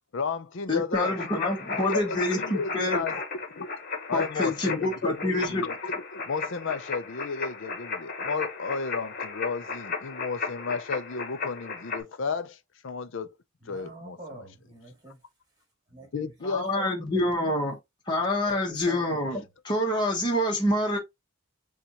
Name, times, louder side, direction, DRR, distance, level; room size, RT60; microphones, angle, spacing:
voice 1, 0.1-1.2 1.7-3.2 3.5-3.7 4.1-12.6 12.8-13.3 13.7-14.2 16.1-17.1, left 4 dB, 60° left, 0.5 m, -33 dB
voice 2, 0.7-3.0 4.1-5.6 16.4-17.8 18.1-21.0, left 1 dB, 20° left, 1.1 m, -27 dB
sound 1, 0.9-12.0, left 4 dB, 45° left, 1.1 m, -35 dB
voice 3, 13.6-15.2 15.9-16.3 17.1-17.5 18.5-19.3, right 1 dB, 20° right, 2.5 m, -46 dB
6.8 x 2.4 x 2.9 m
head